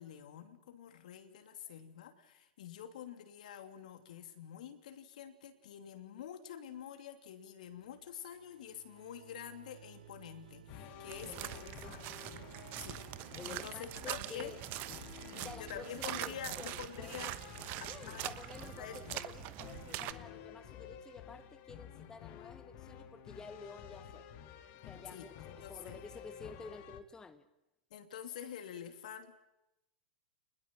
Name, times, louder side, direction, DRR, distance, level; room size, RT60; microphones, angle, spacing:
voice 1, 0.0-12.1 12.8-13.0 13.5-14.5 15.2-17.3 17.8-18.4 18.8-19.0 25.1-25.3 25.6-26.0 27.9-29.4, left 9 dB, 65° left, 2.8 m, -47 dB
sound 1, 7.6-15.8, right 9 dB, 70° right, 1.9 m, -59 dB
sound 2, 10.7-27.0, left 9 dB, 45° left, 2.2 m, -51 dB
voice 2, 11.1-12.0 13.3-14.6 15.3-17.4 17.9-24.3 24.9-27.5, left 4 dB, 15° left, 1.0 m, -51 dB
sound 3, 11.1-20.1, right 16 dB, 40° right, 1.1 m, -43 dB
28.0 x 20.5 x 7.6 m
figure-of-eight pair, 95°, 5 cm